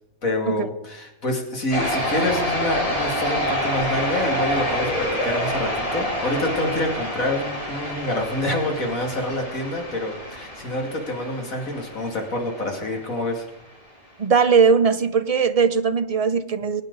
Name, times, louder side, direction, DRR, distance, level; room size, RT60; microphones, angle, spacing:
voice 1, 0.2-13.4, left 1 dB, 70° left, 1 dB, 2.9 m, -27 dB
sound 1, 1.7-13.2, equal, 25° left, 3.4 m, -27 dB
voice 2, 14.2-16.8, right 5 dB, 40° right, 9 dB, 0.6 m, -19 dB
22.0 x 9.4 x 4.0 m, 0.92 s
omnidirectional pair, 1.5 m